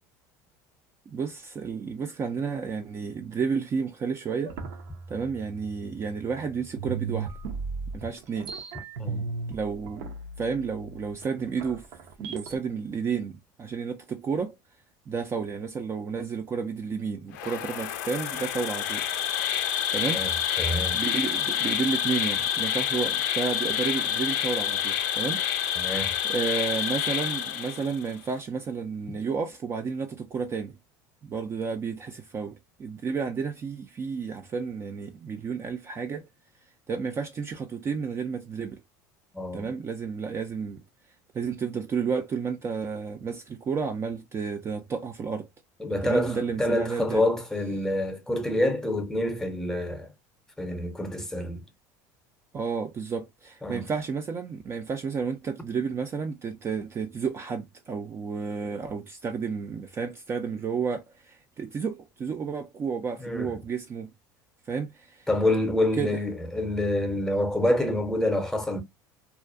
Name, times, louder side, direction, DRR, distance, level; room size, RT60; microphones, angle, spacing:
voice 1, 1.1-4.6 5.1-7.3 7.9-8.5 9.5-10.1 10.4-11.9 12.2-14.6 15.1-19.1 19.9-20.2 20.9-25.9 26.3-30.8 31.2-36.3 36.9-38.8 39.5-40.8 41.3-45.5 46.0-47.2 52.5-64.1 64.7-65.3 66.0-66.2, right 5 dB, 30° right, 0.4 m, -31 dB
sound 1, 4.5-6.4 6.8-12.6, right 4 dB, 75° right, 0.6 m, -36 dB
Insect, 17.3-28.1, left 10 dB, 80° left, 0.4 m, -28 dB
voice 2, 20.1-21.0 25.8-26.1 39.3-39.7 45.8-50.1 50.6-51.6 53.6-53.8 63.2-63.6 65.3-68.8, left 1 dB, 5° left, 0.7 m, -27 dB
2.4 x 2.1 x 2.4 m
supercardioid pair, 100°, 9 cm